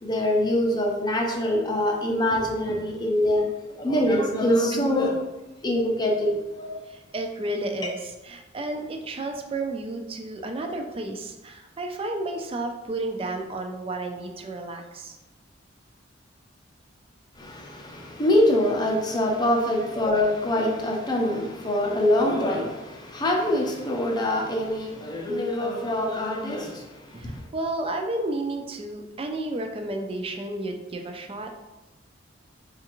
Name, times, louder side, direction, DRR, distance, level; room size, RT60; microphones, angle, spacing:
voice 1, 0.0-3.5 3.8-5.2 5.6-6.8 17.4-26.9 27.2-27.3, left 1 dB, 20° left, 1 dB, 0.5 m, -24 dB
voice 2, 6.9-15.2 27.1-31.5, right 2 dB, 30° right, 4 dB, 0.4 m, -32 dB
4.3 x 2.4 x 2.9 m, 1.0 s
head